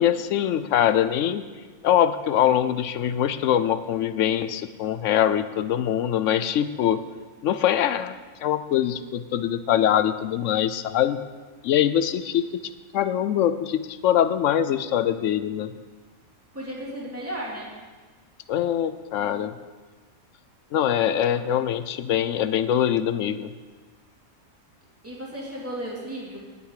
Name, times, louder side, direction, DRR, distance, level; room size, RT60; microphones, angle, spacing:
voice 1, 0.0-1.4 1.8-7.0 7.4-8.2 8.4-11.2 11.6-12.5 12.9-15.7 18.5-19.5 20.7-23.5, left 10 dB, 70° left, 12 dB, 0.8 m, -23 dB
voice 2, 16.5-17.7 21.2-21.5 25.0-26.4, right 1 dB, 10° right, -5 dB, 2.8 m, -34 dB
18.5 x 6.6 x 4.9 m, 1.4 s
omnidirectional pair, 1.5 m